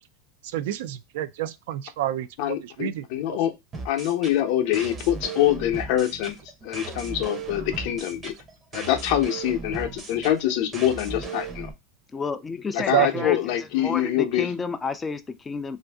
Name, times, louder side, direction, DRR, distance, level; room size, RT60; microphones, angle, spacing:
voice 1, 0.5-3.1 12.9-13.3, right 12 dB, 70° right, 0.3 m, -28 dB
voice 2, 2.4-3.5 3.8-6.4 6.6-8.3 8.7-11.7 12.7-14.5, left 12 dB, 60° left, 0.7 m, -25 dB
sound 1, 3.7-11.7, right 4 dB, 25° right, 0.7 m, -37 dB
voice 3, 12.1-15.8, left 4 dB, 15° left, 0.4 m, -31 dB
2.5 x 2.5 x 3.4 m
supercardioid pair, 135°, 0 cm